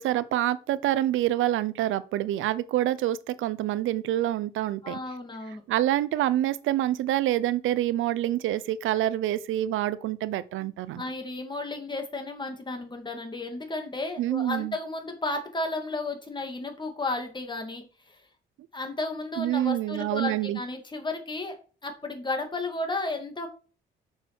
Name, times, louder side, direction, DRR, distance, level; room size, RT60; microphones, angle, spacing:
voice 1, 0.0-5.0 5.7-11.0 14.2-14.8 19.4-20.6, right 13 dB, 85° right, 0.7 m, -26 dB
voice 2, 4.8-5.6 10.6-10.7 11.0-18.2 18.7-21.6 21.8-23.5, left 2 dB, 25° left, 2.6 m, -33 dB
6.7 x 6.6 x 6.2 m
cardioid pair, 90°, 20 cm